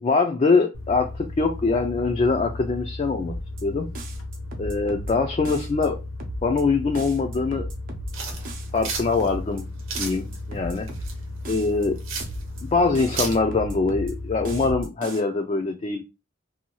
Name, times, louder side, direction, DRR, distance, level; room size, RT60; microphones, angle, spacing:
voice 1, 0.0-3.3 3.6-3.8 4.6-6.0 6.4-7.7 8.7-9.7 10.0-10.9 11.5-12.0 12.6-16.0, left 4 dB, 30° left, 0.3 m, -23 dB
sound 1, 0.7-14.7, left 2 dB, 85° left, 0.9 m, -35 dB
sound 2, 3.2-3.6 4.0-5.1 5.5-5.9 6.2-6.6 7.0-8.1 8.4-8.9 9.2-9.6 10.0-11.1 11.5-11.9 12.2-12.6 12.9-14.1 14.4-15.2, right 1 dB, 45° right, 0.6 m, -36 dB
sound 3, 8.1-13.4, right 5 dB, 90° right, 0.9 m, -34 dB
2.7 x 2.2 x 2.9 m
head